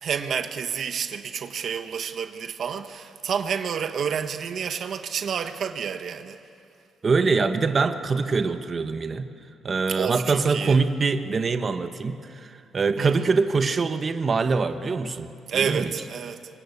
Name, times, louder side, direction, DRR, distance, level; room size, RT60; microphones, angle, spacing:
voice 1, 0.0-6.4 9.9-10.8 13.0-13.1 15.5-16.4, right 7 dB, 60° right, 8 dB, 1.1 m, -29 dB
voice 2, 7.0-9.3 9.6-15.9, right 4 dB, 40° right, 9 dB, 1.1 m, -24 dB
24.5 x 21.0 x 8.4 m, 2.5 s
cardioid pair, 90°, 0 cm